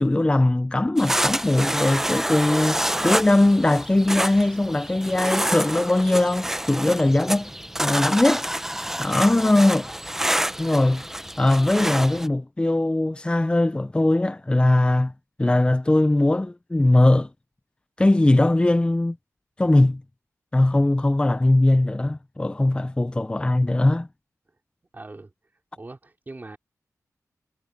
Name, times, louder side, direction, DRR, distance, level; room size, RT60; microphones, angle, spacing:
voice 1, 0.0-7.5 7.8-8.5 9.0-9.9 10.6-11.0 11.4-15.1 15.4-17.3 18.0-19.2 19.6-20.0 20.5-24.1, left 2 dB, 15° left, 0.6 m, -20 dB
sound 1, 1.0-12.3, right 1 dB, 5° right, 0.9 m, -27 dB
voice 2, 9.1-9.4 24.9-25.3 25.8-26.6, right 2 dB, 30° right, 3.0 m, -41 dB
wide cardioid pair, 90°, 6 cm